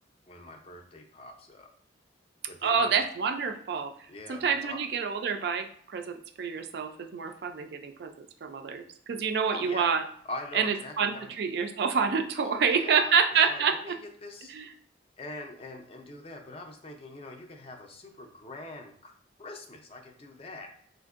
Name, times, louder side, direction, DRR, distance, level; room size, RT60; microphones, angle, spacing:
voice 1, 0.3-1.7 2.5-3.0 4.1-4.8 9.5-9.9 10.2-11.3 12.4-13.1 13.5-14.5 15.2-19.1 19.4-20.7, left 2 dB, 30° left, 3 dB, 0.4 m, -43 dB
voice 2, 2.6-3.9 4.3-10.0 10.5-14.0 14.5-14.7, right 6 dB, 55° right, 6 dB, 0.3 m, -28 dB
3.6 x 2.5 x 2.4 m, 0.63 s
head